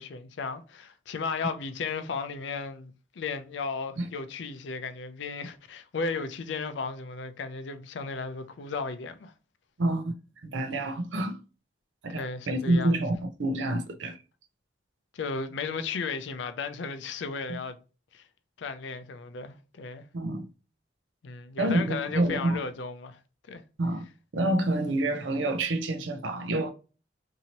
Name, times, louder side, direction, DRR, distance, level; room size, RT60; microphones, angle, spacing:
voice 1, 0.0-9.3 12.1-13.0 15.1-17.8 18.1-18.3 18.6-20.0 21.2-23.2 23.5-23.6, left 4 dB, 75° left, 0.4 m, -35 dB
voice 2, 9.8-10.1 10.4-11.4 12.0-14.2 17.5-17.6 20.1-20.4 21.6-22.6 23.8-24.0 24.3-26.7, right 1 dB, 90° right, 0.5 m, -28 dB
2.8 x 2.7 x 2.8 m
head